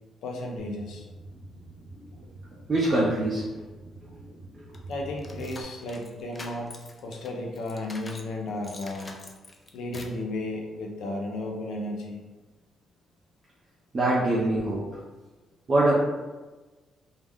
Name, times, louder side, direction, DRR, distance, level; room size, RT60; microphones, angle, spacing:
voice 1, 0.2-1.1 4.9-9.2 9.7-12.2, left 1 dB, 75° left, 1 dB, 0.5 m, -34 dB
sound 1, 0.6-5.6, right 2 dB, 85° right, 0.7 m, -45 dB
voice 2, 2.7-3.4 4.5-4.6 13.9-15.0 15.7-15.9, right 1 dB, 40° right, -5 dB, 0.6 m, -23 dB
sound 2, 4.7-8.3 8.6-10.2, left 2 dB, 25° left, 0.4 m, -45 dB
2.3 x 2.1 x 3.4 m, 1.2 s
cardioid pair, 90°, 0 cm